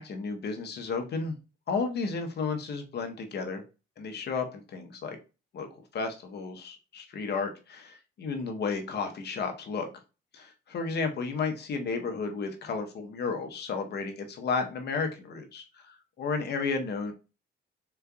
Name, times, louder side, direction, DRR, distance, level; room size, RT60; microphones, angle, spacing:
voice 1, 0.0-1.4 1.7-3.6 4.0-5.2 5.5-5.7 5.9-9.9 10.3-17.1, left 4 dB, 55° left, 5 dB, 0.9 m, -33 dB
3.8 x 3.3 x 2.3 m, 0.31 s
cardioid pair, 90°, 20 cm